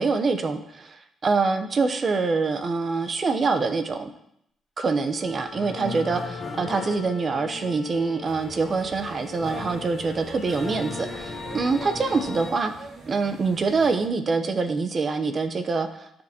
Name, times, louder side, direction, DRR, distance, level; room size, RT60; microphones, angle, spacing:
voice 1, 0.0-4.1 4.8-12.7 13.1-16.2, right 4 dB, 40° right, 8 dB, 0.8 m, -25 dB
Wind instrument woodwind instrument, 5.1-11.4, left 8 dB, 15° left, 2.3 m, -43 dB
sound 1, 5.2-12.5, left 3 dB, 30° left, 0.9 m, -37 dB
sound 2, 8.3-14.1, right 2 dB, 60° right, 1.6 m, -43 dB
13.0 x 5.3 x 2.9 m, 0.75 s
cardioid pair, 90°, 0 cm